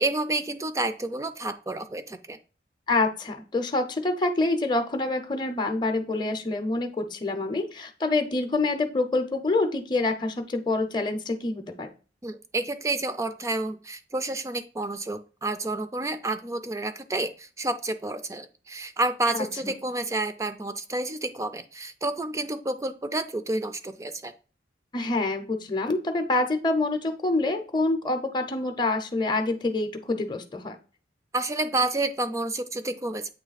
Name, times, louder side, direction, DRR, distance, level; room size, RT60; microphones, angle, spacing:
voice 1, 0.0-2.4 12.2-24.3 31.3-33.3, right 2 dB, 15° right, 9 dB, 0.4 m, -29 dB
voice 2, 2.9-11.9 19.3-19.7 24.9-30.8, left 2 dB, 25° left, 6 dB, 0.6 m, -26 dB
8.2 x 3.1 x 4.0 m, 0.36 s
head